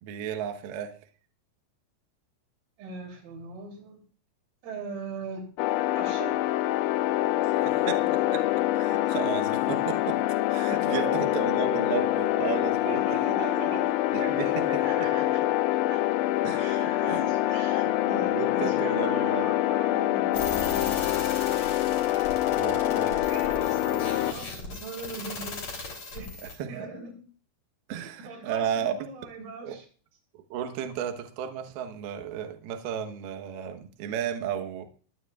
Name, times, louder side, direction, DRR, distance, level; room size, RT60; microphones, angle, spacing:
voice 1, 0.0-0.9 7.4-8.4 8.7-10.2 10.5-13.0 14.1-14.7 16.4-16.6 17.1-17.2 17.9-18.1 18.3-19.5 22.4-23.2 26.4-26.7 27.9-28.9 29.6-29.8 30.5-34.9, right 9 dB, 70° right, 6 dB, 2.4 m, -33 dB
voice 2, 2.8-4.0 4.6-5.5 6.0-6.4 10.7-11.4 12.9-15.4 15.9-16.0 16.6-21.0 22.1-22.4 22.7-25.6 26.1-27.3 27.9-29.9, right 3 dB, 90° right, 2 dB, 5.9 m, -39 dB
sound 1, 5.6-24.3, left 15 dB, 90° left, 2.6 m, -25 dB
sound 2, 20.3-26.5, left 3 dB, 35° left, 3.8 m, -38 dB
22.5 x 9.6 x 2.4 m, 0.41 s
omnidirectional pair, 5.9 m